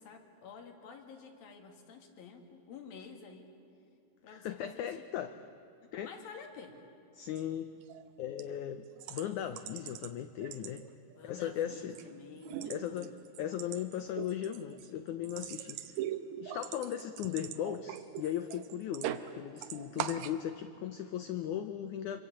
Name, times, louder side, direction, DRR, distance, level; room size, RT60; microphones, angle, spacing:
voice 1, 0.0-3.5 4.2-5.3 5.8-6.8 11.2-13.0, left 5 dB, 70° left, 4 dB, 3.8 m, -50 dB
voice 2, 4.3-5.4 5.9-6.1 7.1-7.7 8.2-8.8 9.1-10.8 11.2-12.0 12.7-13.1 13.4-16.0 16.3-22.2, left 10 dB, 85° left, 10 dB, 1.7 m, -37 dB
sound 1, 7.3-7.4 7.8-8.1 8.4-8.5 9.0-10.1 10.4-11.2 11.5-12.1 12.4-19.3 19.6-20.4, right 11 dB, 75° right, 1.7 m, -41 dB
26.0 x 23.5 x 8.7 m, 2.6 s
omnidirectional pair, 4.4 m